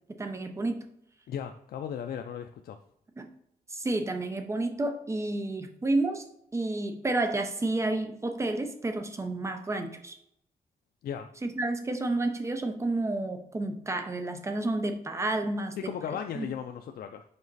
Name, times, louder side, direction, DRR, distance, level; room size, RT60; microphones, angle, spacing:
voice 1, 0.2-0.8 3.2-3.3 3.7-6.2 6.5-10.2 11.4-15.9 16.3-16.5, right 2 dB, 20° right, 6 dB, 0.6 m, -30 dB
voice 2, 1.3-2.8 11.0-11.3 15.7-17.2, left 8 dB, 85° left, 6 dB, 0.4 m, -36 dB
5.2 x 4.8 x 4.0 m, 0.73 s
wide cardioid pair, 170°, 15 cm